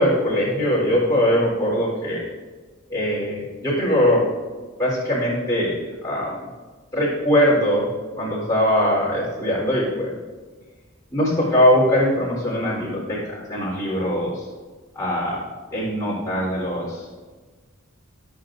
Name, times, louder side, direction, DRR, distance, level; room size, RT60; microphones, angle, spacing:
voice 1, 0.0-2.2 2.9-4.3 4.8-6.4 6.9-7.9 8.2-10.1 11.1-14.5 14.9-15.4 15.7-17.1, equal, 15° left, -7 dB, 4.0 m, -21 dB
24.5 x 8.4 x 2.7 m, 1.4 s
head